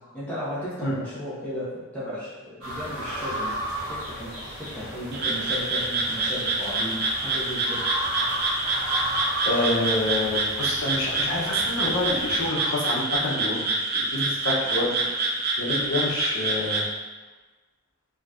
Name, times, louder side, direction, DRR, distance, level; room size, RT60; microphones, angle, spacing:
voice 1, 0.1-3.6 3.9-7.9, equal, 5° left, -11 dB, 1.0 m, -35 dB
sound 1, 2.6-12.5, right 1 dB, 85° right, 1.4 m, -34 dB
Frog, 5.1-16.9, right 2 dB, 45° right, 0.4 m, -27 dB
voice 2, 9.4-13.7 13.9-15.2 15.6-16.8, left 2 dB, 70° left, -4 dB, 0.7 m, -27 dB
3.9 x 2.8 x 2.4 m, 1.2 s
head